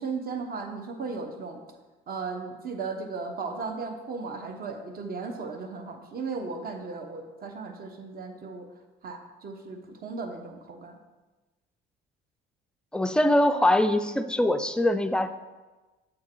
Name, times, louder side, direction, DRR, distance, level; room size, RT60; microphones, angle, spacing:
voice 1, 0.0-1.6 2.1-8.7 9.0-11.0, right 4 dB, 45° right, 4 dB, 1.0 m, -36 dB
voice 2, 12.9-15.3, left 1 dB, 5° left, 9 dB, 0.3 m, -23 dB
7.6 x 3.7 x 4.6 m, 1.2 s
cardioid pair, 100°, 21 cm